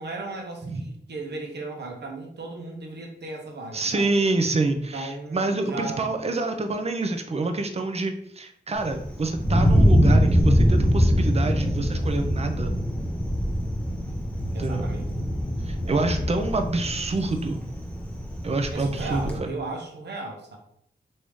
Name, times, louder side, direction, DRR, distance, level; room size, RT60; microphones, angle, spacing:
voice 1, 0.0-4.1 4.9-6.1 14.5-15.1 15.8-16.3 18.7-20.6, right 2 dB, 75° right, 1 dB, 0.8 m, -36 dB
voice 2, 3.7-12.8 14.6-14.9 15.6-17.6 18.4-19.5, right 3 dB, 35° right, 6 dB, 0.5 m, -27 dB
Thunder, 8.8-19.4, equal, 5° left, 0.8 m, -23 dB
3.4 x 2.7 x 3.1 m, 0.70 s
wide cardioid pair, 80°, 18 cm